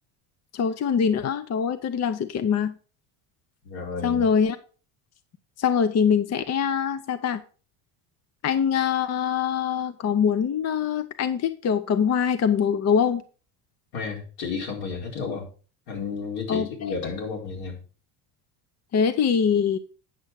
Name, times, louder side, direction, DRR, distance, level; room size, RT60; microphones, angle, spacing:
voice 1, 0.5-2.7 4.0-4.6 5.6-7.4 8.4-13.2 16.5-16.9 18.9-19.8, left 7 dB, 35° left, 0.7 m, -23 dB
voice 2, 3.6-4.3 13.9-15.5 15.9-17.8, left 5 dB, 80° left, 4.5 m, -32 dB
9.6 x 6.4 x 4.7 m
supercardioid pair, 105°, 47 cm